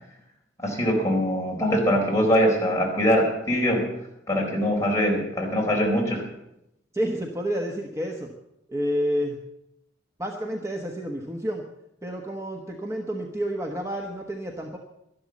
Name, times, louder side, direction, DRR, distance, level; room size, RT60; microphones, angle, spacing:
voice 1, 0.6-3.9 4.3-6.2, equal, 15° left, -2 dB, 4.1 m, -22 dB
voice 2, 6.9-8.3 8.7-9.4 10.2-11.6 12.0-14.8, equal, 15° right, 2 dB, 1.1 m, -29 dB
12.5 x 11.5 x 7.2 m, 0.84 s
head